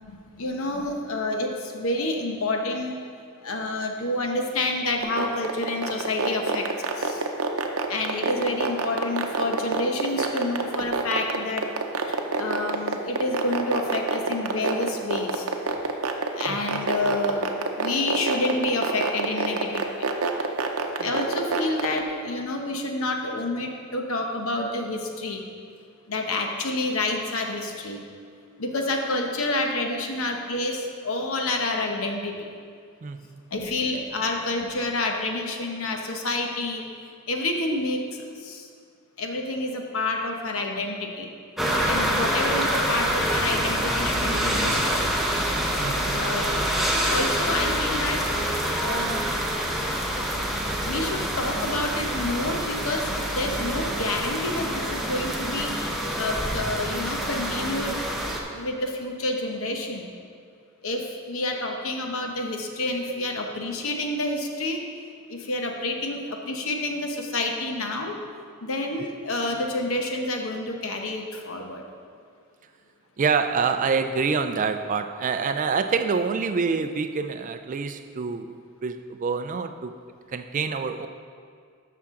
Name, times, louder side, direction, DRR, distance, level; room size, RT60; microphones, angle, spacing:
voice 1, 0.0-3.0 3.4-7.3 7.9-11.7 12.0-15.5 16.3-20.1 21.0-25.4 26.1-28.0 28.6-32.5 33.5-36.8 37.3-38.0 38.3-38.7 39.2-41.3 41.9-45.2 46.1-46.6 47.0-48.3 48.8-49.4 50.8-58.0 58.2-60.1 60.8-64.8 65.3-68.2 68.6-71.8, left 2 dB, 70° left, 2 dB, 1.0 m, -29 dB
sound 1, 5.0-22.0, right 4 dB, 70° right, 0.7 m, -25 dB
voice 2, 16.5-16.8 21.0-21.1 21.4-21.5 30.8-30.9 33.0-33.4 34.0-34.1 45.8-46.2 69.0-69.1 73.2-78.5 78.8-79.9 80.3-81.1, right 5 dB, 35° right, 9 dB, 0.3 m, -27 dB
sound 2, 41.6-58.4, equal, ahead, 0.8 m, -26 dB
13.0 x 5.8 x 3.7 m, 2.2 s
head